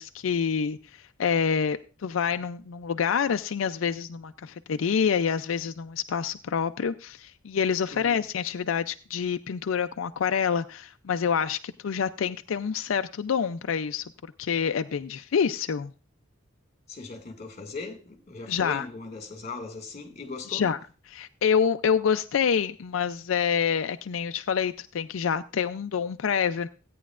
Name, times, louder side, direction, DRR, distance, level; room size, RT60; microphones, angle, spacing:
voice 1, 0.0-14.1 14.4-15.9 18.5-18.9 20.5-20.8 21.1-26.7, left 7 dB, 85° left, 0.4 m, -27 dB
voice 2, 7.9-8.2 16.9-20.7, left 3 dB, 35° left, 2.1 m, -39 dB
16.5 x 9.3 x 2.4 m
head